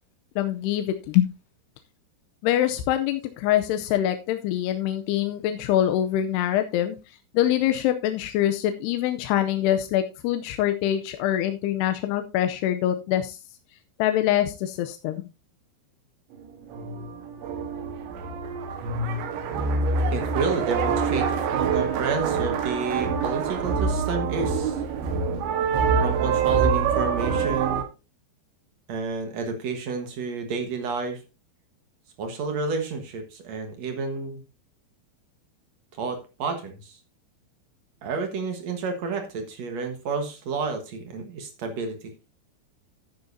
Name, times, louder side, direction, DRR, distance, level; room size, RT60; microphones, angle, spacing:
voice 1, 0.4-1.3 2.4-7.0 7.3-13.4 14.0-15.3, left 12 dB, 80° left, 7 dB, 2.6 m, -24 dB
sound 1, 16.5-27.8, right 5 dB, 85° right, 3.7 m, -25 dB
voice 2, 20.1-24.7 26.0-27.8 28.9-31.2 32.2-34.4 36.0-37.0 38.0-42.1, right 4 dB, 65° right, 5 dB, 1.8 m, -30 dB
12.0 x 9.4 x 2.7 m, 0.28 s
omnidirectional pair, 5.1 m